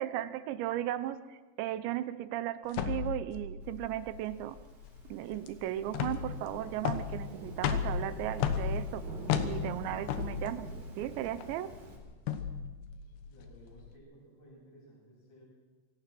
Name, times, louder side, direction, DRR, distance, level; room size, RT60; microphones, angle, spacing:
voice 1, 0.0-4.6 5.1-9.0 9.4-10.7 11.0-11.7, right 12 dB, 80° right, 13 dB, 2.9 m, -36 dB
sound 1, 2.7-13.9, left 7 dB, 70° left, 3.1 m, -35 dB
Thunderstorm / Rain, 4.3-12.0, right 1 dB, 50° right, 6.1 m, -47 dB
voice 2, 13.3-15.5, right 1 dB, 25° left, -4 dB, 8.2 m, -56 dB
27.0 x 17.5 x 6.1 m, 1.3 s
omnidirectional pair, 5.5 m